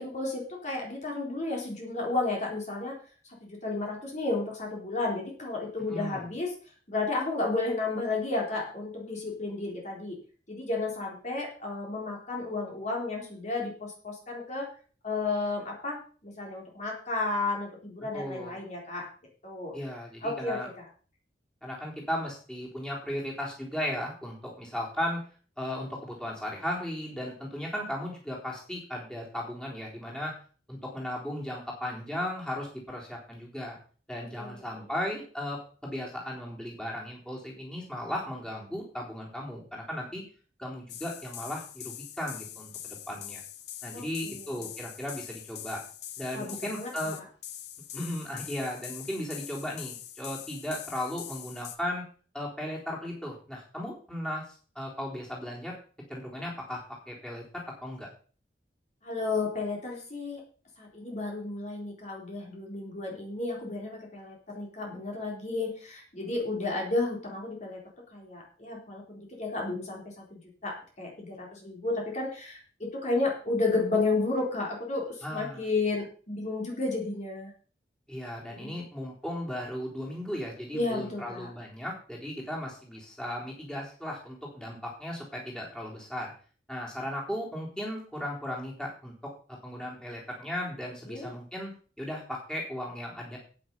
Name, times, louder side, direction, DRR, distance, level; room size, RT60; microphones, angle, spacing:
voice 1, 0.0-2.9 3.4-6.5 6.9-10.2 10.5-14.7 15.0-19.1 19.4-19.7 20.2-20.7 34.2-34.7 43.9-44.4 46.3-47.2 59.0-60.4 60.8-67.8 68.1-70.0 70.3-77.5 78.5-78.8 80.7-81.5 91.1-91.3, left 3 dB, 40° left, -1 dB, 3.8 m, -32 dB
voice 2, 5.9-6.2 18.1-18.5 19.7-20.7 21.6-25.2 25.6-30.3 30.7-33.8 34.1-40.2 40.6-43.4 43.8-45.8 46.2-47.2 47.9-52.0 52.3-55.7 56.1-58.1 75.2-75.6 78.1-86.3 86.7-89.1 89.6-93.4, left 1 dB, 5° left, -4 dB, 3.8 m, -36 dB
sound 1, 40.9-51.8, left 11 dB, 65° left, 1.3 m, -43 dB
11.0 x 9.3 x 5.4 m, 0.40 s
head